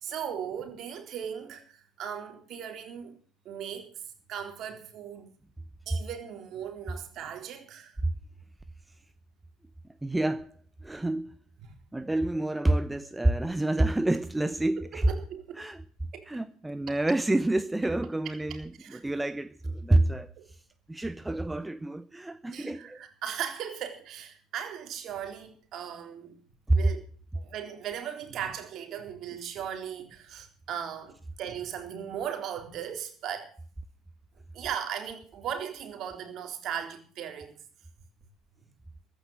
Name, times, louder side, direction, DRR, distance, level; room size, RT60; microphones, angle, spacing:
voice 1, 0.0-3.2 3.5-3.9 4.3-5.3 5.9-7.9 14.8-15.6 16.1-16.3 18.8-19.0 20.4-20.5 22.5-26.3 26.7-27.0 27.3-33.5 34.5-37.6, right 8 dB, 50° right, 3.7 m, -37 dB
voice 2, 10.0-10.5 10.8-11.3 11.9-15.1 15.6-15.8 16.3-20.3 20.9-23.0 26.7-26.8, right 2 dB, 10° right, 0.8 m, -28 dB
14.5 x 10.5 x 7.7 m
hypercardioid pair, 65°, 0 cm